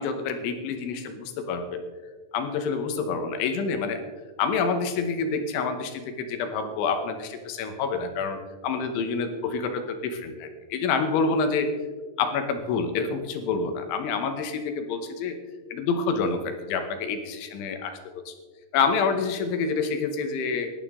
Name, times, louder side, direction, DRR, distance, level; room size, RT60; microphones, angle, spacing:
voice 1, 0.0-1.8 2.3-4.0 4.4-8.4 8.6-11.7 12.2-15.4 15.7-18.3 18.7-20.7, left 5 dB, 75° left, 7 dB, 3.2 m, -27 dB
19.0 x 11.5 x 3.7 m, 1.4 s
omnidirectional pair, 6.0 m